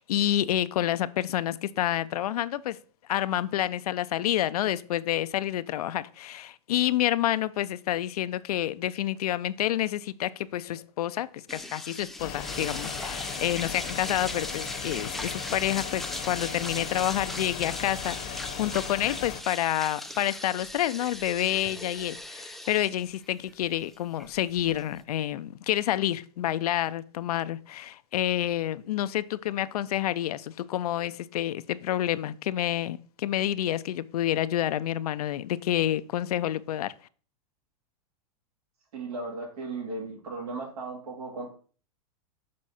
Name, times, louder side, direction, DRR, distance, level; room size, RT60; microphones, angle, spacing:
voice 1, 0.0-2.8 3.1-36.9, left 12 dB, 85° left, 0.5 m, -28 dB
sound 1, 11.5-25.0, left 1 dB, ahead, 0.4 m, -38 dB
sound 2, 12.2-19.4, left 9 dB, 40° left, 0.8 m, -38 dB
voice 2, 38.9-41.5, right 3 dB, 80° right, 3.3 m, -36 dB
6.3 x 4.5 x 4.2 m
supercardioid pair, 135°, 19 cm